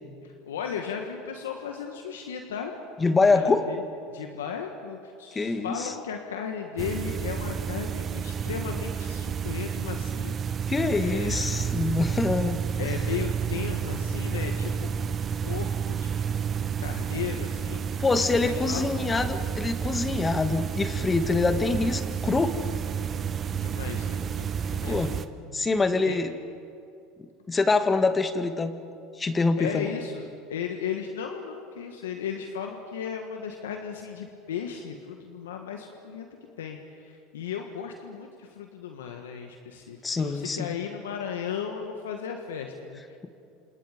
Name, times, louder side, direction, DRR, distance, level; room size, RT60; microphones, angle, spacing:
voice 1, 0.2-2.7 3.3-10.3 10.9-11.4 12.8-15.2 15.4-18.0 18.4-18.9 23.6-25.2 26.0-26.2 29.6-36.3 36.6-43.3, left 7 dB, 90° left, 4 dB, 1.7 m, -36 dB
voice 2, 3.0-3.7 5.3-5.9 10.7-12.6 18.0-22.6 24.9-25.2 25.5-26.3 27.5-28.7 29.2-29.9 40.0-40.7, left 3 dB, 20° left, 9 dB, 2.0 m, -25 dB
sound 1, 6.8-25.3, right 7 dB, 35° right, 1.1 m, -30 dB
28.5 x 27.5 x 5.3 m, 2.5 s
hypercardioid pair, 90°, 0 cm